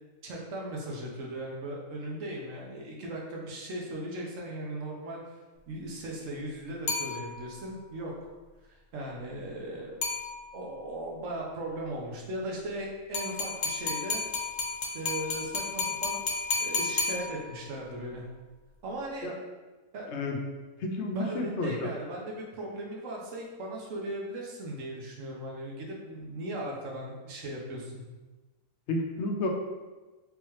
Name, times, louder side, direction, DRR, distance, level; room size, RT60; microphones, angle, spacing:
voice 1, 0.2-5.2 5.7-8.1 8.6-10.0 10.5-14.2 14.9-16.3 16.6-18.3 18.8-19.3 19.9-20.1 21.1-28.0, right 1 dB, 65° right, -1 dB, 1.1 m, -38 dB
sound 1, 6.9-7.7 10.0-10.8 13.1-17.8, left 4 dB, 80° left, 0.4 m, -32 dB
voice 2, 20.8-21.9 28.9-29.5, left 2 dB, 65° left, 2 dB, 0.8 m, -31 dB
3.4 x 2.9 x 3.1 m, 1.2 s
omnidirectional pair, 1.5 m